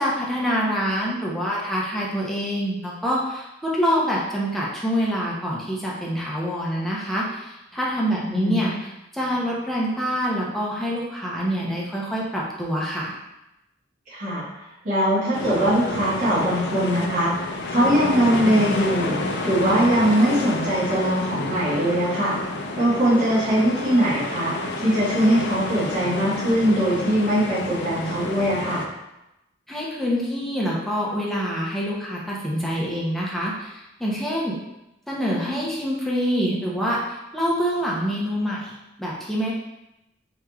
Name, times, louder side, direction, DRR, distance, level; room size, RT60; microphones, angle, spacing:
voice 1, 0.0-13.1 29.7-34.6 35.1-38.7 39.0-39.5, equal, ahead, -5 dB, 0.6 m, -26 dB
voice 2, 8.3-8.7 14.1-22.3 22.7-28.8, equal, 45° right, -9 dB, 1.3 m, -21 dB
sound 1, 15.3-28.9, left 2 dB, 65° left, 0.4 m, -29 dB
4.6 x 3.0 x 2.3 m, 0.92 s
head